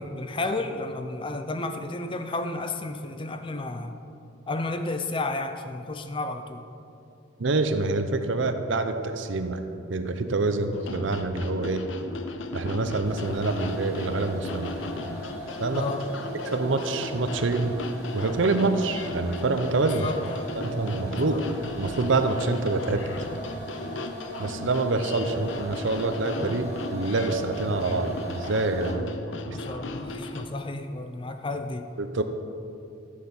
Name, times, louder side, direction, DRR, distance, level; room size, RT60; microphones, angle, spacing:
voice 1, 0.0-4.0 4.5-6.7 15.7-16.0 20.0-20.4 21.3-21.4 29.5-31.9, left 2 dB, 25° left, 8 dB, 0.5 m, -32 dB
voice 2, 7.4-9.6 9.9-11.8 12.5-14.8 15.6-15.9 16.4-17.8 18.1-20.1 20.5-21.5 21.8-23.1 24.4-29.1 29.5-29.6 32.0-32.2, right 3 dB, 65° right, 8 dB, 0.7 m, -26 dB
sound 1, 10.7-30.5, left 2 dB, 65° left, 0.6 m, -37 dB
sound 2, 13.0-28.9, equal, 10° right, 2.2 m, -40 dB
13.5 x 7.4 x 4.4 m, 2.7 s
head